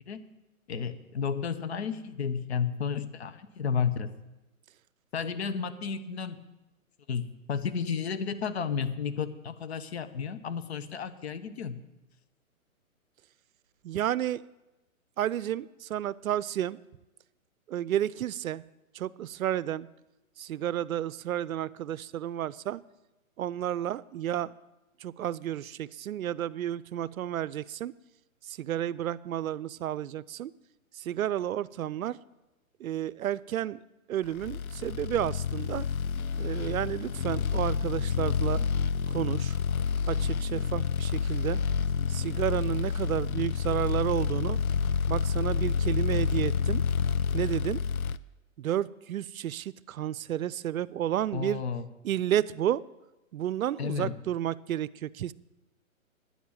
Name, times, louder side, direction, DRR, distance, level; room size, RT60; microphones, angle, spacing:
voice 1, 0.7-4.1 5.1-6.4 7.1-11.8 51.3-51.9 53.8-54.2, left 6 dB, 50° left, 12 dB, 1.0 m, -32 dB
voice 2, 13.8-14.4 15.2-16.8 17.7-18.6 18.9-19.9 20.4-22.8 23.4-24.5 25.0-27.9 28.5-30.5 31.0-32.2 32.8-33.8 34.1-35.9 36.4-38.7 39.1-39.5 40.1-41.6 42.1-44.6 45.1-46.8 47.3-47.8 48.6-51.6 52.0-52.8 53.3-55.3, right 11 dB, 80° right, 20 dB, 0.5 m, -31 dB
sound 1, 34.4-48.2, left 6 dB, 85° left, 0.6 m, -29 dB
10.0 x 7.2 x 8.8 m, 1.0 s
hypercardioid pair, 155°, 42 cm